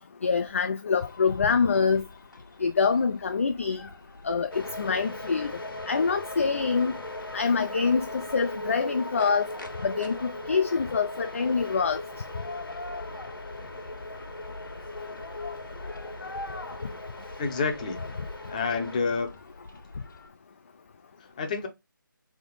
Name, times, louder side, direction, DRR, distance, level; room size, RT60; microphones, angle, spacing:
voice 1, 0.2-2.1 2.6-3.9 4.2-5.5 5.9-6.9 7.3-9.5 9.8-12.0, left 5 dB, 35° left, 0.3 m, -25 dB
sound 1, 1.0-20.3, left 2 dB, 65° left, 1.4 m, -47 dB
sound 2, 4.5-19.0, left 1 dB, 85° left, 1.4 m, -39 dB
voice 2, 17.4-18.0 18.5-19.3 21.4-21.7, left 4 dB, 20° left, 0.7 m, -28 dB
3.9 x 3.5 x 3.8 m
figure-of-eight pair, 165°, 12 cm